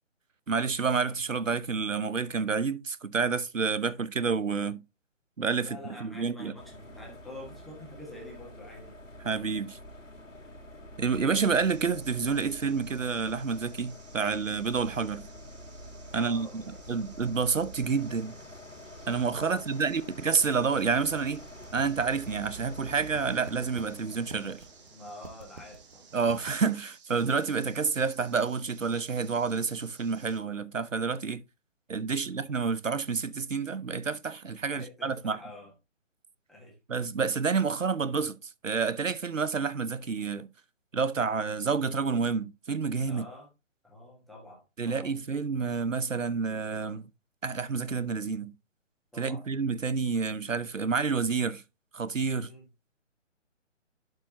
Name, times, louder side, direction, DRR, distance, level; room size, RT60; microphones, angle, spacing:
voice 1, 0.5-4.8 5.4-6.5 9.2-9.8 11.0-15.2 16.1-16.6 16.9-18.4 19.1-21.4 21.7-24.6 26.1-31.4 31.9-35.4 36.9-40.5 40.9-43.3 44.8-47.1 47.4-48.5 49.2-51.6 51.9-52.5, right 5 dB, 90° right, 0.8 m, -29 dB
voice 2, 5.6-9.0 16.1-17.0 19.4-20.1 24.9-26.1 32.1-32.3 34.6-35.7 36.5-36.8 43.1-43.5 43.8-45.2 49.1-49.5 52.3-52.7, left 1 dB, ahead, 1.4 m, -47 dB
sound 1, 6.5-25.0, equal, 85° left, 2.2 m, -47 dB
sound 2, 11.3-30.4, right 5 dB, 35° right, 2.5 m, -57 dB
sound 3, 21.2-26.8, right 4 dB, 50° right, 1.4 m, -50 dB
11.5 x 4.8 x 2.8 m
figure-of-eight pair, 145°, 37 cm